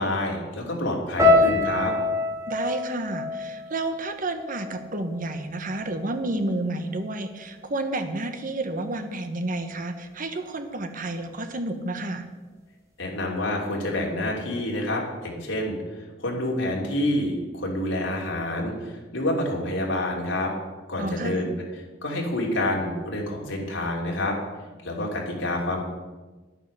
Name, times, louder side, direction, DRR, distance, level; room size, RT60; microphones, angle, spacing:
voice 1, 0.0-1.9 13.0-20.5 20.9-21.5 22.0-24.4 24.8-25.8, left 1 dB, 80° left, -1 dB, 3.0 m, -28 dB
sound 1, 1.2-5.4 5.7-6.4 7.0-7.3, left 2 dB, 15° right, 2.9 m, -25 dB
voice 2, 2.5-12.2 21.0-21.5, right 2 dB, 45° right, 7 dB, 1.2 m, -30 dB
11.0 x 9.0 x 6.7 m, 1.2 s
head